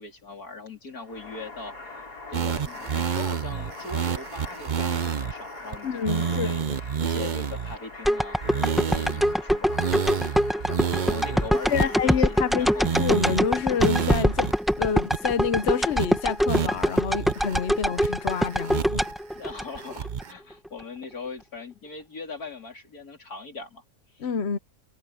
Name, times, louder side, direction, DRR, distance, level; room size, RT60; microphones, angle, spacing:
voice 1, 0.0-1.7 2.3-6.6 7.0-10.4 10.7-12.9 19.3-23.8 24.1-24.3, left 3 dB, 70° left, 4.4 m, -40 dB
sound 1, 0.9-14.6, left 3 dB, 85° left, 6.4 m, -43 dB
sound 2, 2.3-5.3 5.7-5.8 6.0-7.8 8.4-9.3 9.7-12.5 12.8-13.4 13.8-14.5 14.8-14.9 15.1-15.6 16.0-16.1 16.5-17.6 18.0-19.1 19.5-20.3, right 8 dB, 50° right, 0.6 m, -29 dB
voice 2, 5.8-6.5 11.7-12.7 13.0-14.5 14.8-19.1 24.2-24.6, left 7 dB, 50° left, 1.0 m, -28 dB
sound 3, 8.0-20.2 20.7-20.8, equal, ahead, 1.4 m, -24 dB
omnidirectional pair, 1.6 m